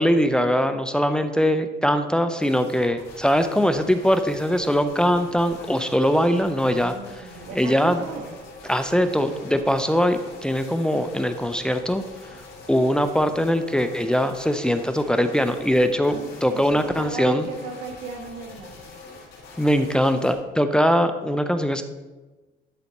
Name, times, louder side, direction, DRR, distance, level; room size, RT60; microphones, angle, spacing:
voice 1, 0.0-6.9 7.6-8.0 8.7-12.0 12.7-17.5 19.6-21.8, equal, 5° left, 8 dB, 0.5 m, -21 dB
sound 1, 2.3-20.4, left 3 dB, 65° left, 3.1 m, -44 dB
voice 2, 6.3-8.3 16.0-18.9 21.1-21.3, right 5 dB, 85° right, 4 dB, 1.5 m, -36 dB
12.0 x 4.1 x 5.3 m, 1.2 s
cardioid pair, 110°, 17 cm